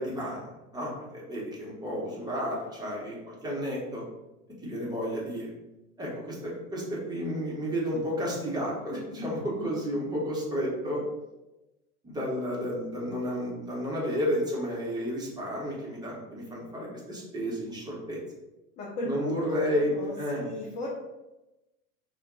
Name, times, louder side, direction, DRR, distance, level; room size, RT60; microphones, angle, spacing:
voice 1, 0.0-4.0 4.6-5.5 6.0-11.0 12.0-18.2 19.0-20.5, equal, 10° right, -4 dB, 0.9 m, -32 dB
voice 2, 18.8-19.6 19.9-20.1 20.4-20.9, left 1 dB, 20° left, -4 dB, 0.4 m, -35 dB
2.3 x 2.2 x 3.7 m, 1.0 s
figure-of-eight pair, 90°, 43 cm